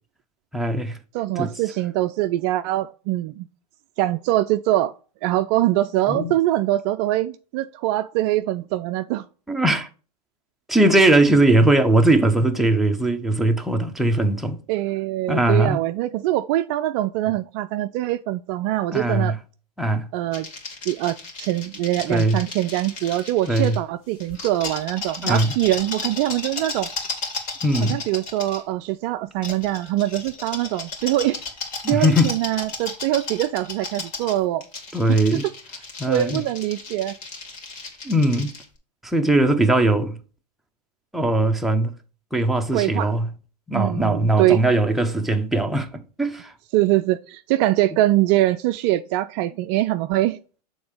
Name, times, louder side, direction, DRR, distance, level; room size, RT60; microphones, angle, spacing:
voice 1, 0.5-1.0 1.4-1.5 6.1-6.3 9.5-9.9 10.7-14.6 15.3-15.8 18.9-19.4 19.8-20.1 22.1-22.4 23.5-23.8 25.2-25.5 27.6-28.0 31.8-32.3 34.9-35.4 36.0-36.4 38.0-38.5 39.0-40.2 41.1-41.9 42.3-43.3 43.7-46.5, right 1 dB, ahead, 0.7 m, -20 dB
voice 2, 1.1-3.5 4.0-4.9 5.2-9.3 14.7-19.4 20.1-20.5 20.9-26.9 27.8-31.4 31.9-34.6 35.1-35.5 36.1-37.1 42.7-43.1 43.7-44.6 46.7-50.4, right 15 dB, 40° right, 0.4 m, -23 dB
sound 1, 20.3-23.8 24.2-28.6 29.4-38.6, left 3 dB, 40° left, 2.6 m, -34 dB
6.9 x 3.8 x 4.9 m
hypercardioid pair, 110°, 21 cm